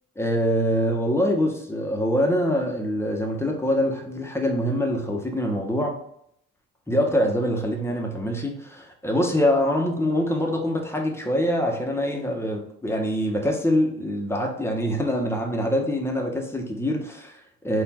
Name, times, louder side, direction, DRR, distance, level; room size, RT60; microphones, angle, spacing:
voice 1, 0.2-6.0 6.9-17.8, equal, 10° left, 1 dB, 1.0 m, -24 dB
4.2 x 2.6 x 4.3 m, 0.72 s
cardioid pair, 90°, 30 cm